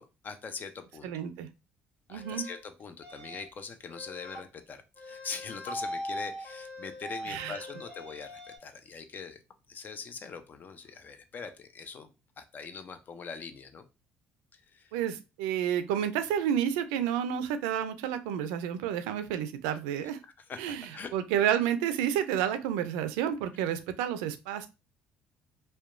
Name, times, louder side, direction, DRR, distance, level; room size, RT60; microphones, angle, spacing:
voice 1, 0.0-1.2 2.1-9.4 9.7-13.9 14.5-14.9 20.2-21.1 23.5-23.6, left 5 dB, 40° left, 10 dB, 0.5 m, -43 dB
voice 2, 1.0-1.5 2.1-2.4 7.3-7.6 14.9-20.2 20.6-24.7, right 9 dB, 80° right, 10 dB, 0.3 m, -30 dB
sound 1, 2.2-2.6 3.0-3.5 3.9-4.4 5.0-8.6, equal, 25° left, 1.4 m, -40 dB
2.8 x 2.2 x 2.4 m, 0.28 s
supercardioid pair, 70°, 5 cm